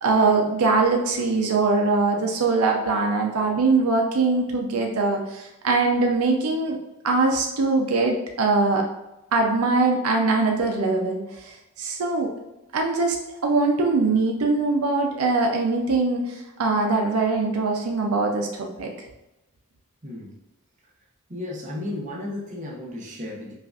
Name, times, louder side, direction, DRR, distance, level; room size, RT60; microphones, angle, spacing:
voice 1, 0.0-6.8 7.0-8.9 9.3-12.3 12.7-13.2 13.4-18.9, right 3 dB, 85° right, 2 dB, 0.6 m, -22 dB
voice 2, 20.0-20.3 21.3-23.5, left 1 dB, 35° right, -3 dB, 0.9 m, -34 dB
5.4 x 2.5 x 2.4 m, 0.96 s
head